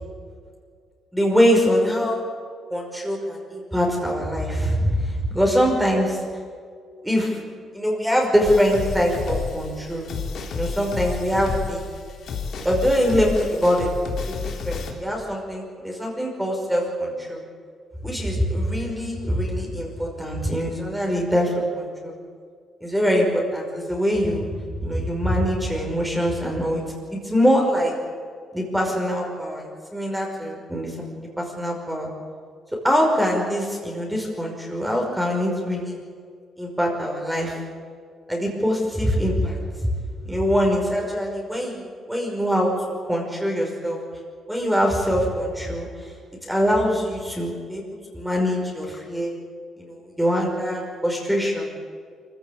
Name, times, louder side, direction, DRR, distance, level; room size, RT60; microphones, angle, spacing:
voice 1, 1.1-2.2 2.7-6.2 7.0-7.4 7.7-10.0 10.5-11.9 12.6-13.9 14.2-17.4 18.0-22.1 22.8-24.5 24.8-26.8 27.1-27.9 28.5-32.1 32.8-36.0 36.6-37.6 38.3-39.6 39.8-39.9 40.3-42.7 43.1-44.0 44.5-46.1 46.4-47.8 48.1-49.3 49.8-51.7, equal, 5° right, -1 dB, 5.4 m, -23 dB
sound 1, 8.4-14.9, left 5 dB, 65° left, 3.6 m, -31 dB
23.5 x 15.5 x 8.9 m, 2.1 s
cardioid pair, 90°, 0 cm